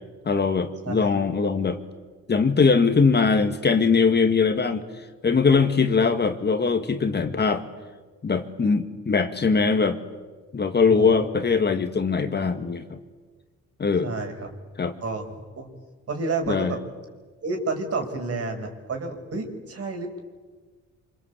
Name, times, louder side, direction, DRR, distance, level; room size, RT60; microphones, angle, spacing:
voice 1, 0.3-1.8 2.3-4.8 5.2-7.6 8.2-10.0 10.5-13.0 13.8-14.1 14.8-14.9 16.5-16.7, left 5 dB, 35° left, 7 dB, 2.0 m, -21 dB
voice 2, 14.0-14.3 15.0-15.2 15.6-15.7 16.1-16.8 17.4-20.2, right 3 dB, 50° right, 4 dB, 5.8 m, -30 dB
27.0 x 26.0 x 8.3 m, 1.4 s
cardioid pair, 90°, 30 cm